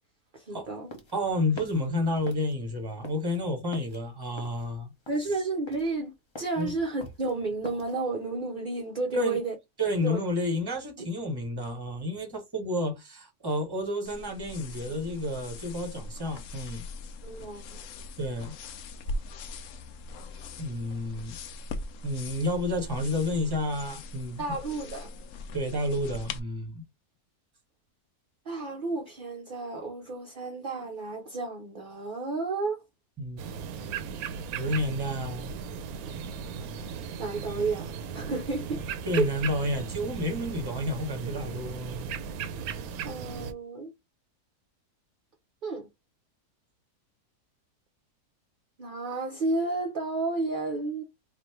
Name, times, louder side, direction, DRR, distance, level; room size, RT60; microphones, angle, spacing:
voice 1, 0.3-0.9 5.1-9.6 10.0-10.2 11.0-11.1 17.2-17.6 24.4-25.1 28.5-32.8 37.2-38.8 39.2-39.3 43.0-43.9 45.6-45.9 48.8-51.0, right 3 dB, 50° right, 0.6 m, -31 dB
sound 1, 0.6-8.0, left 1 dB, 30° left, 0.5 m, -47 dB
voice 2, 1.1-4.9 6.6-6.7 9.1-9.4 9.8-16.8 18.2-18.5 20.6-21.4 22.0-24.4 25.5-26.8 33.2-33.4 34.5-35.5 39.0-42.1, left 1 dB, 20° right, 0.9 m, -30 dB
sound 2, 14.0-26.4, left 2 dB, 65° left, 0.8 m, -41 dB
sound 3, 33.4-43.5, right 6 dB, 75° right, 1.0 m, -37 dB
3.3 x 2.5 x 4.4 m
omnidirectional pair, 1.6 m